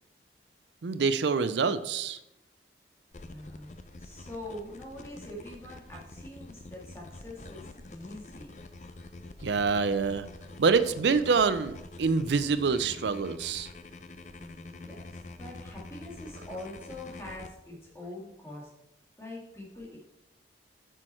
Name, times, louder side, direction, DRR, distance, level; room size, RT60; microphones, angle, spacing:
voice 1, 0.8-2.2 9.4-10.3 10.6-13.7, right 5 dB, 80° right, 12 dB, 0.5 m, -26 dB
sound 1, 3.1-17.5, left 2 dB, 40° left, 0.5 m, -46 dB
voice 2, 3.2-8.5 14.4-18.7 19.2-20.0, left 1 dB, 15° left, -3 dB, 2.2 m, -44 dB
9.0 x 6.3 x 4.4 m, 0.83 s
head